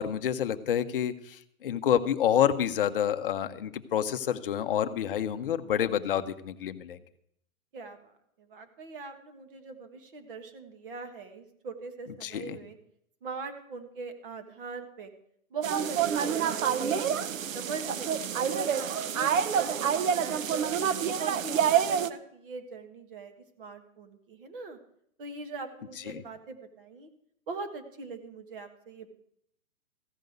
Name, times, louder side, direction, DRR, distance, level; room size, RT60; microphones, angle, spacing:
voice 1, 0.0-7.0 12.2-12.6 26.1-26.2, left 9 dB, 40° left, 9 dB, 0.7 m, -28 dB
voice 2, 7.7-8.1 8.4-12.8 13.2-15.1 15.5-17.0 17.5-20.7 21.0-24.8 25.2-27.1 27.5-29.1, right 4 dB, 40° right, 7 dB, 1.5 m, -40 dB
sound 1, 15.6-22.1, right 8 dB, 65° right, 0.8 m, -27 dB
15.0 x 5.3 x 7.9 m, 0.71 s
hypercardioid pair, 165°, 42 cm